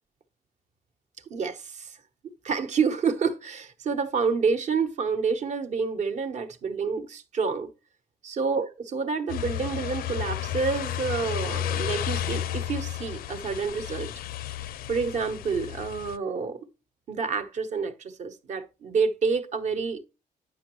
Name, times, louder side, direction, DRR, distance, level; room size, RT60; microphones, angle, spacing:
voice 1, 1.3-2.0 2.4-7.7 8.2-14.1 14.9-16.6 17.1-20.0, right 5 dB, 50° right, 1.1 m, -28 dB
sound 1, 9.3-16.2, left 11 dB, 75° left, 0.5 m, -32 dB
9.5 x 6.1 x 3.1 m
cardioid pair, 170°, 15 cm